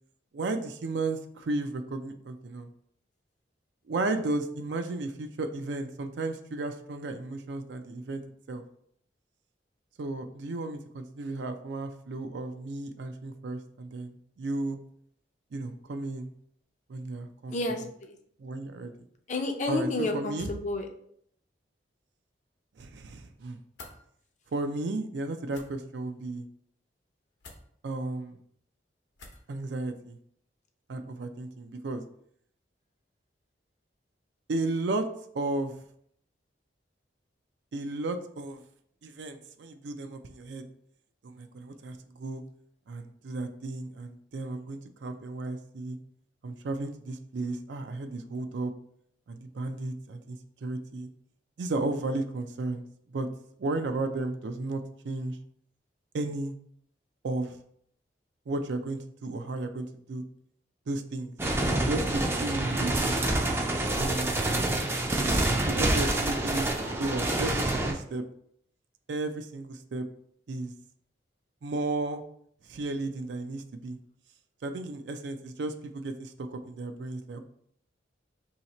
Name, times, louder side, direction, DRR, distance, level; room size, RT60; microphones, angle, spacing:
voice 1, 0.3-2.7 3.9-8.2 8.5-8.6 10.0-14.8 15.5-16.3 16.9-17.5 18.4-19.1 19.7-20.5 22.8-23.6 24.5-26.5 27.8-28.4 29.5-30.2 30.9-32.0 34.5-35.1 35.3-35.7 37.7-38.6 39.0-40.6 41.2-42.4 42.9-46.0 46.4-48.7 49.3-51.1 51.6-52.8 53.1-53.3 53.6-55.4 56.1-56.5 57.2-57.6 58.5-60.2 60.9-61.4 61.7-63.2 63.9-64.4 65.6-66.7 67.0-68.2 69.1-70.1 70.5-70.7 71.6-72.2 72.6-74.0 74.6-77.4, right 2 dB, 75° right, 8 dB, 0.4 m, -34 dB
voice 2, 17.5-18.1 19.3-20.9, left 2 dB, 45° left, 4 dB, 0.5 m, -30 dB
sound 1, 23.7-24.0 25.5-25.7 27.4-27.6 29.2-29.5, left 3 dB, 85° left, 0.8 m, -47 dB
sound 2, 61.4-67.9, right 1 dB, 15° right, 0.4 m, -27 dB
2.8 x 2.8 x 4.1 m, 0.66 s
head